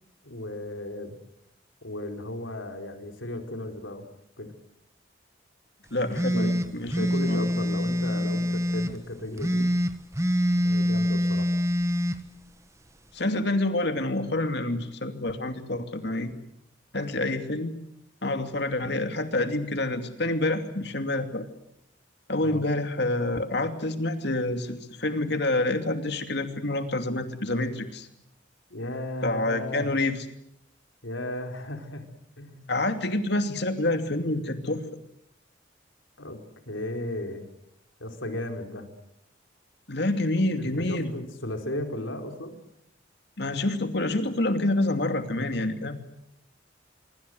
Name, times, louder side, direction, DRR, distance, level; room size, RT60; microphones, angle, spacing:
voice 1, 0.2-1.1 1.8-4.0 4.4-4.5 6.3-6.5 7.0-9.7 10.6-11.5 22.4-22.6 28.7-29.9 31.0-32.1 32.4-32.7 36.2-36.4 36.7-37.5 38.0-38.9 40.6-42.5, left 1 dB, 85° left, 5 dB, 4.5 m, -35 dB
voice 2, 5.9-7.4 13.1-16.3 16.9-17.7 18.2-21.4 22.3-28.1 29.2-30.2 32.7-34.8 39.9-41.1 43.4-46.0, left 2 dB, 60° left, 7 dB, 2.7 m, -27 dB
sound 1, 6.1-8.9 9.4-12.2, equal, 15° right, 1.4 m, -25 dB
25.5 x 24.0 x 8.0 m, 0.77 s
head